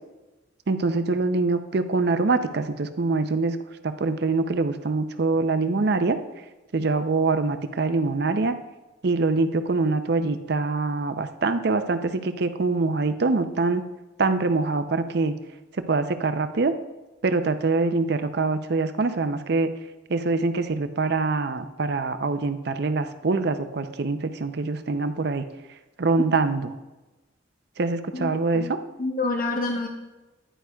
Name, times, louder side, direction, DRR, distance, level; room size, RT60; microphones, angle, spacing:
voice 1, 0.7-3.6 3.8-6.2 6.7-8.6 9.0-13.8 14.2-15.3 15.9-16.7 17.2-19.7 20.1-25.4 26.0-26.7 27.8-28.8, right 3 dB, 55° right, 10 dB, 0.5 m, -24 dB
voice 2, 28.1-28.7 29.0-29.9, left 2 dB, 45° left, 2 dB, 0.8 m, -28 dB
10.0 x 9.3 x 2.3 m, 1.1 s
head